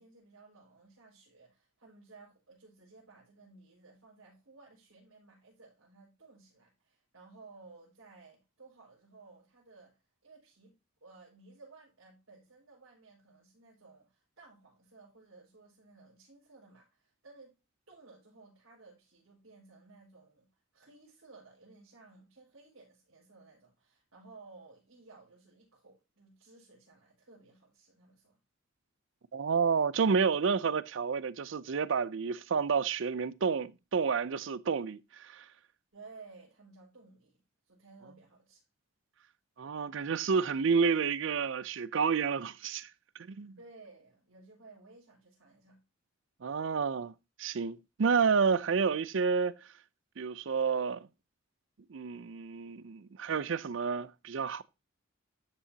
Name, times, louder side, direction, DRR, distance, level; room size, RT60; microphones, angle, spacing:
voice 1, 0.0-10.7 11.0-17.6 17.9-20.5 20.7-28.4 35.9-38.6 43.6-45.8, right 3 dB, 90° right, 5.0 m, -57 dB
voice 2, 29.3-35.4 39.6-42.9 43.3-43.6 46.4-47.1 47.4-49.5 50.2-51.0 51.9-54.6, right 5 dB, 60° right, 0.5 m, -30 dB
12.5 x 5.6 x 2.8 m
head